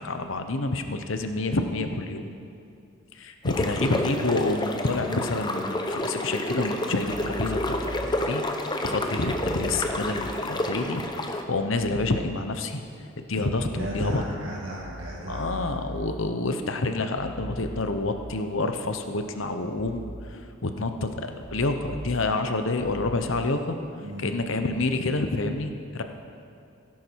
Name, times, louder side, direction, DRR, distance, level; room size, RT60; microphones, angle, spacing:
voice 1, 0.0-2.2 3.1-12.8 13.3-14.2 15.3-23.8 24.2-26.0, left 2 dB, 65° left, 7 dB, 0.9 m, -28 dB
sound 1, 3.4-11.4, left 1 dB, 20° left, 0.8 m, -29 dB
sound 2, 7.0-8.1 9.2-10.1 11.8-12.1 13.4-14.1 14.8-16.1 17.2-18.1 19.8-20.1 21.4-22.1 22.8-23.2, equal, 10° right, 2.3 m, -40 dB
voice 2, 13.7-15.5 24.0-24.3, equal, 65° right, -6 dB, 1.9 m, -35 dB
16.5 x 10.5 x 4.7 m, 2.5 s
head